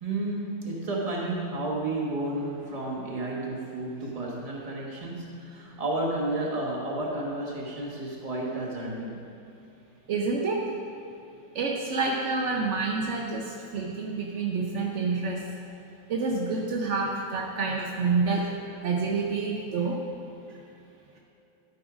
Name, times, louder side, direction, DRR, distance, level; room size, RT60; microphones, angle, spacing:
voice 1, 0.0-9.2, right 2 dB, 25° right, -3 dB, 1.1 m, -31 dB
voice 2, 10.1-10.7 11.5-15.5 16.1-18.5 18.8-20.0 20.5-20.6, right 4 dB, 75° right, -1 dB, 0.6 m, -28 dB
12.0 x 4.7 x 5.0 m, 2.8 s
omnidirectional pair, 2.1 m